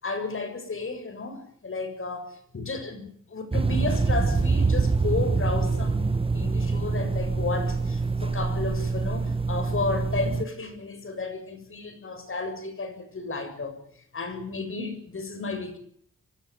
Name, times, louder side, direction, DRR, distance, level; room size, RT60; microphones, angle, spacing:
voice 1, 0.0-13.8 14.1-15.8, left 3 dB, 45° left, 8 dB, 7.5 m, -33 dB
sound 1, 3.5-10.4, right 4 dB, 20° right, 1.1 m, -25 dB
25.5 x 13.5 x 9.6 m, 0.62 s
cardioid pair, 75°, 30 cm